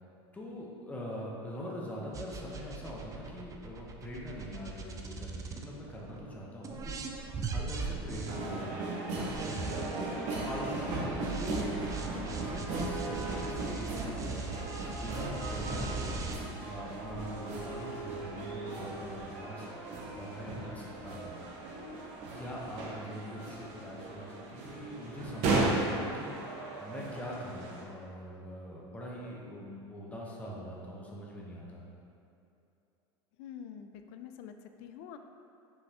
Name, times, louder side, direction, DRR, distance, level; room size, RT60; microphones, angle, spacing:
voice 1, 0.3-10.0 10.4-11.6 12.4-14.5 14.9-16.2 16.6-19.7 20.1-21.4 22.3-26.4 26.8-31.8, equal, 10° left, -4 dB, 0.9 m, -43 dB
sound 1, 2.1-6.2 6.6-16.4, right 4 dB, 25° right, 0.4 m, -40 dB
sound 2, 8.3-27.8, right 2 dB, 55° right, 0.8 m, -36 dB
voice 2, 33.4-35.2, left 8 dB, 60° left, 7 dB, 0.4 m, -46 dB
5.4 x 3.2 x 2.9 m, 2.7 s
hypercardioid pair, 100°, 14 cm